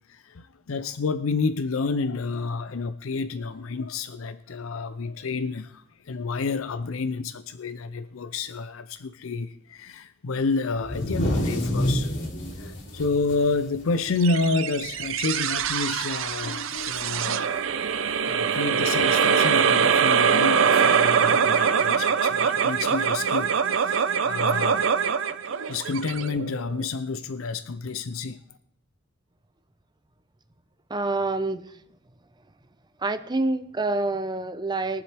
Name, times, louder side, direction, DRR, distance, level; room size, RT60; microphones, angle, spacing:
voice 1, 0.1-12.1 12.6-17.6 18.2-24.9 25.7-28.4, left 4 dB, 85° left, 11 dB, 0.6 m, -29 dB
sound 1, 10.8-14.5 14.8-15.0 15.4-15.8 16.9-17.0 18.1-18.2, equal, 65° left, 2.8 m, -28 dB
sound 2, 14.2-26.8, right 7 dB, 70° right, 0.6 m, -23 dB
voice 2, 30.9-31.8 33.0-35.0, right 2 dB, 20° right, 11 dB, 0.6 m, -27 dB
22.0 x 7.5 x 3.4 m, 0.73 s
head